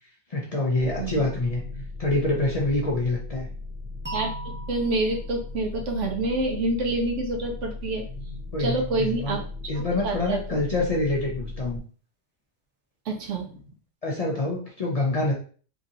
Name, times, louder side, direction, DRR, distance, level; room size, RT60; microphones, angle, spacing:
voice 1, 0.3-1.6 2.0-3.5 8.5-9.4 9.7-11.8 14.0-15.3, left 2 dB, 45° left, -2 dB, 0.5 m, -26 dB
sound 1, 0.8-11.8, left 3 dB, 65° left, 0.9 m, -37 dB
voice 2, 1.0-1.3 4.1-4.3 4.7-8.0 8.6-9.4 9.7-10.4 13.1-13.7, right 2 dB, 85° right, 2 dB, 1.1 m, -27 dB
sound 2, 4.0-7.0, right 2 dB, 20° right, 0.3 m, -40 dB
3.0 x 2.6 x 2.7 m, 0.41 s
omnidirectional pair, 1.2 m